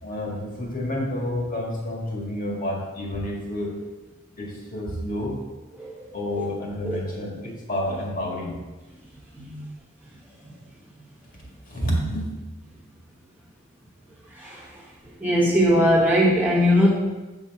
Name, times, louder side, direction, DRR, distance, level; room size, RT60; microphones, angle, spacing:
voice 1, 0.0-3.7 4.4-5.4 6.1-7.4 7.7-8.6 9.3-9.7 11.4-12.3, left 1 dB, 40° left, -2 dB, 1.8 m, -30 dB
voice 2, 14.4-14.7 15.2-16.9, equal, 10° right, -6 dB, 1.3 m, -19 dB
8.0 x 6.1 x 4.8 m, 1.2 s
head